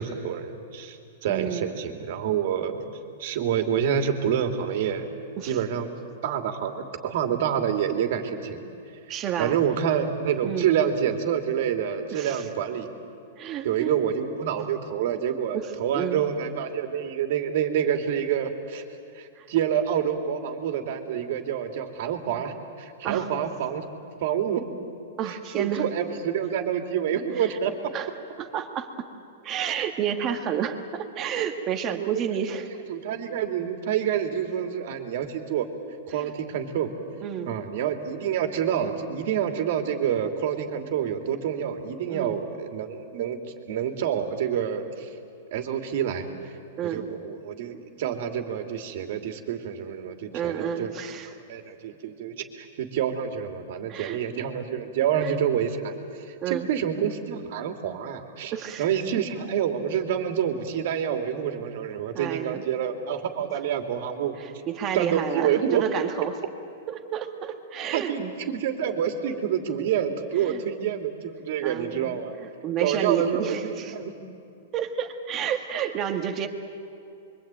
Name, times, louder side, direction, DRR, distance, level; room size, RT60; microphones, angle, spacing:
voice 1, 0.0-2.8 3.2-5.1 5.4-5.9 6.2-8.6 9.4-12.9 13.6-18.8 19.1-23.8 24.2-24.6 25.3-27.7 31.8-32.3 32.9-35.7 36.1-36.9 37.5-45.1 45.5-46.3 46.8-50.9 51.5-58.5 58.8-64.4 64.9-65.8 67.9-72.3 72.8-74.1, right 8 dB, 55° right, 6 dB, 2.8 m, -27 dB
voice 2, 1.3-1.7 5.4-5.6 9.1-9.6 10.4-10.7 12.1-12.5 13.4-13.9 15.5-16.2 19.4-19.5 23.0-23.3 25.2-25.9 27.3-27.6 27.9-28.1 28.4-29.1 29.4-32.7 36.1-36.3 37.2-37.5 42.1-42.4 46.8-47.1 50.3-51.4 53.9-54.2 55.1-55.3 56.4-56.7 58.5-58.9 62.1-62.6 64.4-66.4 66.9-68.3 70.4-70.6 71.6-73.9 74.7-76.5, right 9 dB, 25° right, 6 dB, 1.8 m, -30 dB
26.5 x 23.5 x 9.1 m, 2.6 s
supercardioid pair, 160°, 0 cm